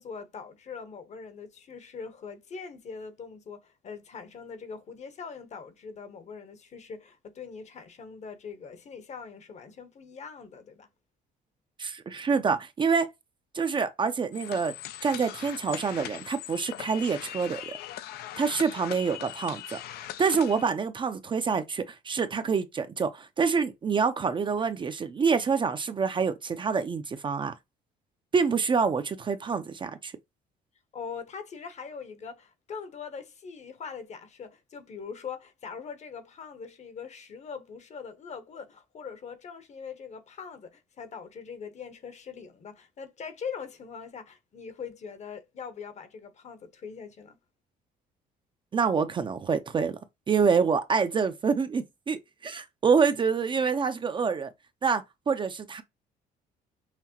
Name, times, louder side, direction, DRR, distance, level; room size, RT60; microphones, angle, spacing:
voice 1, 0.0-10.9 30.9-47.4, left 6 dB, 45° left, 0.9 m, -42 dB
voice 2, 11.8-13.1 13.5-14.7 15.0-17.7 18.4-19.8 20.2-27.5 28.3-30.1 48.7-50.0 50.3-54.5 54.8-55.8, right 5 dB, 30° right, 0.5 m, -26 dB
sound 1, 14.3-20.7, left 13 dB, 70° left, 0.4 m, -40 dB
5.7 x 2.1 x 2.9 m
cardioid pair, 110°, 17 cm